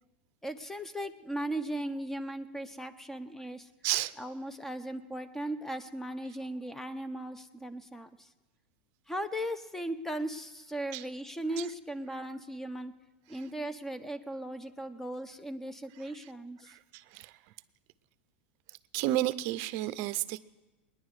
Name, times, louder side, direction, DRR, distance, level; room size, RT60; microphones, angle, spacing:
voice 1, 0.4-3.7 4.2-8.3 9.1-12.9 13.3-16.8, right 1 dB, 5° left, 11 dB, 0.7 m, -37 dB
voice 2, 16.6-17.4 18.7-20.4, right 15 dB, 50° right, 15 dB, 0.5 m, -32 dB
21.0 x 10.5 x 4.8 m, 1.2 s
supercardioid pair, 130°, 6 cm